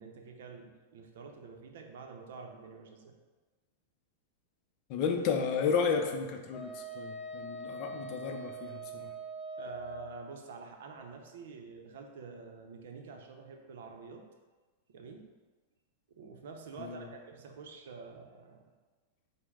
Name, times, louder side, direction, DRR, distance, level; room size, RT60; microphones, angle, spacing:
voice 1, 0.0-3.2 7.7-7.9 9.6-14.2 14.9-15.3 16.1-18.6, right 4 dB, 75° right, 3 dB, 0.6 m, -48 dB
voice 2, 4.9-9.1 16.8-17.1, left 6 dB, 45° left, 4 dB, 0.5 m, -32 dB
Wind instrument woodwind instrument, 6.5-10.1, right 2 dB, 15° left, 0.9 m, -43 dB
5.1 x 2.1 x 3.5 m, 1.3 s
hypercardioid pair, 135°, 0 cm